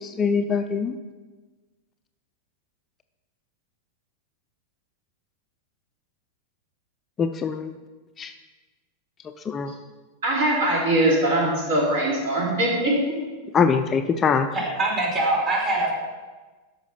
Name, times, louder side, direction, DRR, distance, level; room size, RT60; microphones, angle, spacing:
voice 1, 0.2-0.9 7.2-7.7 8.2-8.3 9.5-9.7 13.5-14.5, left 6 dB, 25° left, 8 dB, 0.5 m, -22 dB
voice 2, 10.2-12.9, right 1 dB, 55° right, -4 dB, 3.9 m, -21 dB
voice 3, 14.5-15.9, right 2 dB, 30° right, -2 dB, 2.9 m, -23 dB
12.0 x 5.7 x 5.7 m, 1.3 s
figure-of-eight pair, 90°, 0 cm